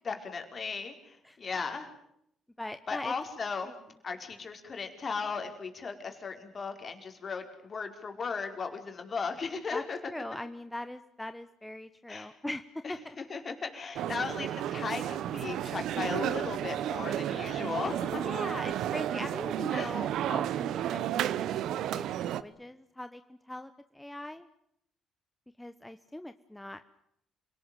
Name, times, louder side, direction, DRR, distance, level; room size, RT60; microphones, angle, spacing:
voice 1, 0.0-1.9 2.9-3.7 4.0-10.0 12.1-12.3 12.8-18.2 19.7-19.9, left 5 dB, 45° left, 5 dB, 4.8 m, -36 dB
voice 2, 2.6-3.1 3.6-3.7 9.7-9.8 10.1-12.6 12.9-13.2 18.2-24.5 25.6-26.8, left 1 dB, 10° left, 10 dB, 1.2 m, -41 dB
sound 1, 13.9-22.4, right 11 dB, 75° right, 1.0 m, -32 dB
27.5 x 18.5 x 9.2 m, 0.76 s
supercardioid pair, 65°, 0 cm